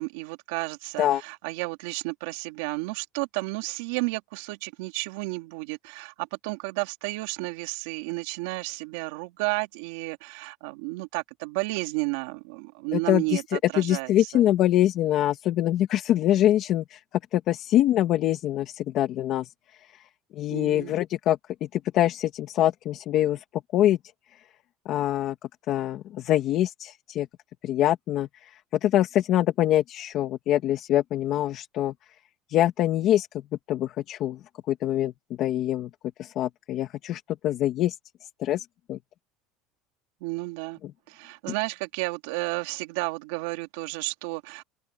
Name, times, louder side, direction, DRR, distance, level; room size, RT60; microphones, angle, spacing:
voice 1, 0.0-14.5 20.5-21.0 40.2-40.8 41.1-44.6, right 24 dB, 85° right, 2.9 m, -32 dB
voice 2, 12.9-17.0 17.3-19.5 20.3-23.4 23.7-24.0 24.9-25.3 25.7-27.3 27.6-31.9 32.5-33.3 33.7-34.4 34.7-35.1 35.4-35.9 36.2-38.0 38.2-39.0, left 12 dB, 45° left, 2.1 m, -24 dB
cardioid pair, 165°, 0 cm